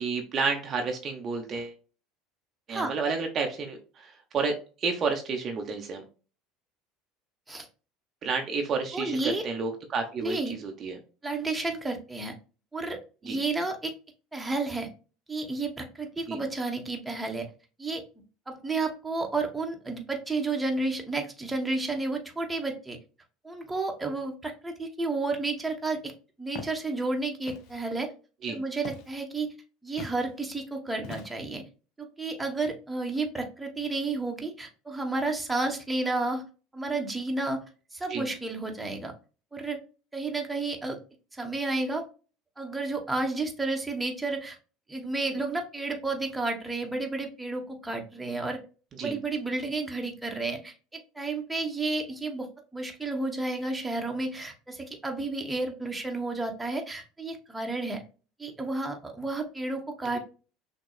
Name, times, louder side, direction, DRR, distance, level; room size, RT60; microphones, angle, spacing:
voice 1, 0.0-1.7 2.7-6.0 8.2-11.0 13.2-13.4 16.3-16.4 28.4-28.6 38.1-38.2 49.0-49.2, right 4 dB, 40° right, 3 dB, 0.8 m, -31 dB
voice 2, 8.9-9.4 10.2-10.5 11.2-12.3 12.7-13.9 14.3-14.9 15.3-17.5 17.8-18.0 18.5-23.0 23.4-26.1 26.4-28.1 28.5-29.5 29.8-31.6 32.0-36.4 36.7-37.6 37.9-39.1 39.5-39.8 40.1-41.0 41.3-42.0 42.6-44.6 44.9-48.6 49.0-52.5 52.7-58.0 58.4-60.2, right 3 dB, 10° right, 2 dB, 1.1 m, -31 dB
Walk footsteps, 26.5-26.8 27.5-27.8 28.9-29.2 30.0-30.2 31.0-31.5, left 4 dB, 60° left, 0.7 m, -41 dB
6.1 x 2.3 x 2.3 m, 0.35 s
hypercardioid pair, 70°, 0 cm